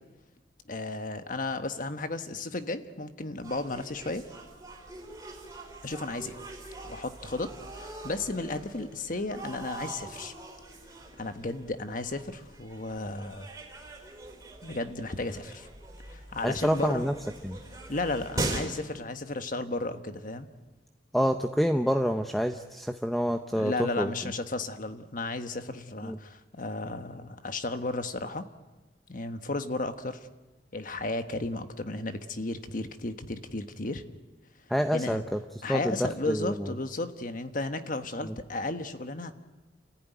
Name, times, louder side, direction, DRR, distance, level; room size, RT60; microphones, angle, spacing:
voice 1, 0.7-4.2 5.8-6.3 6.8-10.3 11.2-13.5 14.6-15.7 16.1-17.0 17.9-20.5 23.5-28.5 29.1-30.3 30.7-34.0 34.9-35.2 35.6-39.3, left 2 dB, 50° left, 9 dB, 1.3 m, -34 dB
sound 1, 3.4-18.6, right 2 dB, 20° right, 4.2 m, -41 dB
voice 2, 16.4-17.2 17.4-17.6 21.1-24.3 26.0-26.2 34.7-35.4 35.7-36.7 38.2-38.4, equal, ahead, 6 dB, 0.7 m, -28 dB
29.0 x 15.0 x 9.3 m, 1.2 s
head